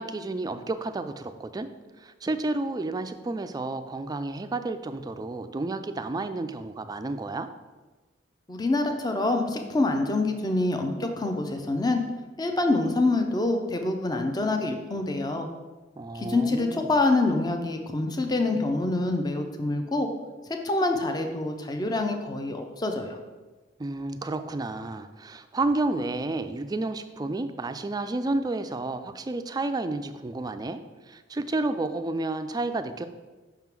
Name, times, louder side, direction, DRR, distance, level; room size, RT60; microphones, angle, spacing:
voice 1, 0.0-1.7 2.0-7.5 16.0-16.9 23.8-30.8 31.1-33.1, right 2 dB, 20° right, 10 dB, 0.3 m, -31 dB
voice 2, 8.5-12.0 12.4-15.5 16.1-20.1 20.6-23.2, left 2 dB, 20° left, 4 dB, 0.6 m, -26 dB
5.7 x 3.7 x 6.0 m, 1.2 s
head